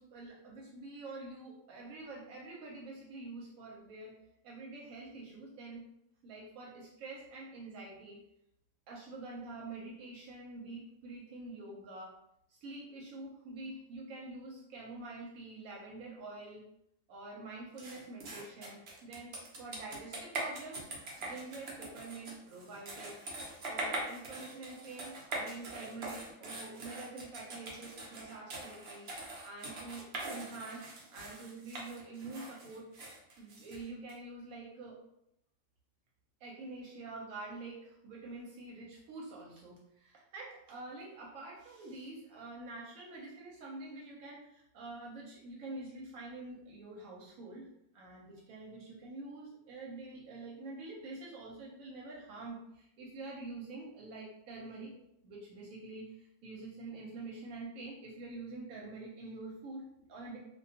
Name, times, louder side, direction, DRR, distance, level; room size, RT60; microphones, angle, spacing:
voice 1, 0.0-4.1 4.4-5.9 6.2-8.2 8.9-12.1 12.5-16.6 17.1-20.8 21.2-23.2 23.7-29.1 29.4-32.9 33.4-35.0 36.4-47.7 47.9-54.9 55.2-60.4, right 2 dB, 80° right, -3 dB, 1.0 m, -46 dB
sound 1, 17.8-34.1, right 2 dB, 60° right, 0.8 m, -43 dB
2.4 x 2.2 x 2.7 m, 0.78 s
omnidirectional pair, 1.4 m